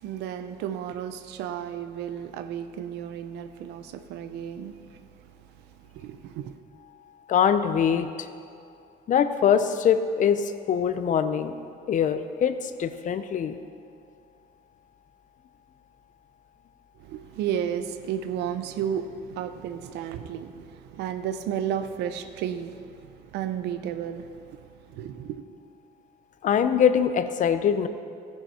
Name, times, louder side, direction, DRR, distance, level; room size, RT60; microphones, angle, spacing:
voice 1, 0.0-5.0 5.8-6.5 17.0-25.4, right 9 dB, 85° right, 0.7 m, -33 dB
voice 2, 7.3-8.3 9.1-11.6 11.9-13.6 26.4-27.9, left 8 dB, 50° left, 0.7 m, -23 dB
14.5 x 10.5 x 4.4 m
cardioid pair, 110°, 17 cm